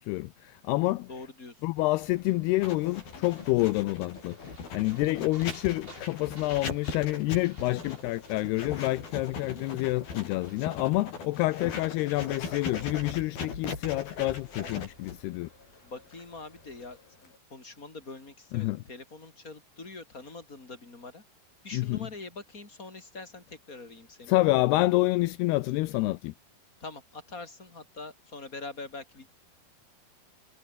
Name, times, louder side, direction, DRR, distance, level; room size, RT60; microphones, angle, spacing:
voice 1, 0.1-1.1 1.6-4.4 4.7-15.5 18.5-18.8 21.7-22.0 24.3-26.3, left 19 dB, 85° left, 2.5 m, -28 dB
voice 2, 1.1-1.6 15.8-21.2 21.6-24.5 26.8-29.3, left 3 dB, 20° left, 5.3 m, -44 dB
sound 1, 1.7-17.0, right 1 dB, 10° right, 7.3 m, -56 dB
Writing, 2.6-17.4, left 5 dB, 55° left, 7.3 m, -39 dB
omnidirectional pair, 5.0 m